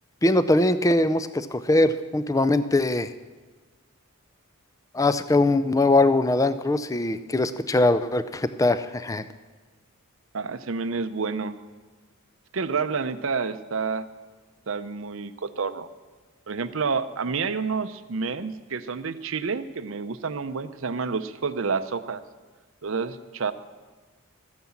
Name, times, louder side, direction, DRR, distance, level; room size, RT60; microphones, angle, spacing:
voice 1, 0.2-3.1 4.9-9.2, left 2 dB, 15° left, 13 dB, 0.4 m, -21 dB
voice 2, 10.3-11.6 12.5-14.1 14.7-15.9 16.5-22.2 22.8-23.5, right 5 dB, 65° right, 12 dB, 0.6 m, -29 dB
14.0 x 9.5 x 7.2 m, 1.3 s
head